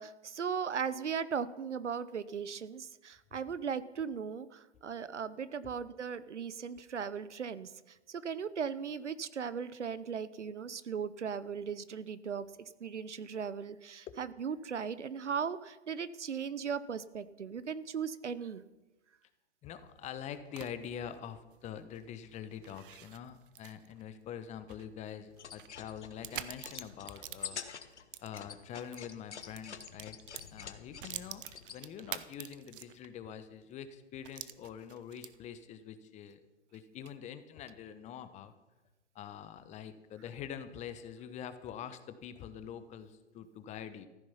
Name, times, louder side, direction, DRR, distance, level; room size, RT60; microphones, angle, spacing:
voice 1, 0.0-18.6, right 6 dB, 85° right, 16 dB, 1.0 m, -38 dB
voice 2, 19.6-30.2 30.5-36.4 36.7-38.5 39.1-44.1, left 8 dB, 20° left, 11 dB, 1.0 m, -45 dB
sound 1, 19.8-29.0 29.3-33.2 33.6-33.7 34.2-35.6, right 12 dB, 50° right, 0.9 m, -48 dB
sound 2, 25.3-31.8, left 7 dB, 75° left, 1.4 m, -47 dB
14.5 x 12.5 x 5.7 m, 1.1 s
hypercardioid pair, 125°, 35 cm